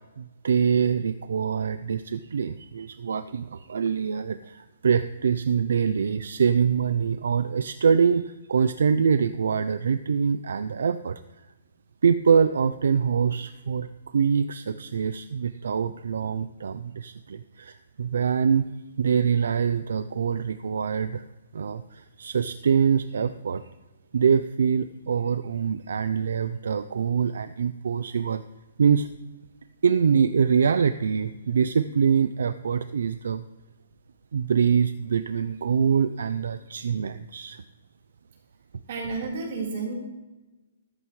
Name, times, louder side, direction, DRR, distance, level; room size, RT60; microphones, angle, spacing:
voice 1, 0.2-11.2 12.0-18.7 19.0-21.2 21.5-23.7 24.1-28.4 28.8-29.1 29.8-33.4 34.3-37.6, right 6 dB, 65° right, 12 dB, 0.5 m, -24 dB
voice 2, 38.9-39.9, right 4 dB, 40° right, -2 dB, 4.0 m, -31 dB
14.0 x 14.0 x 3.2 m, 1.1 s
hypercardioid pair, 175°, 0 cm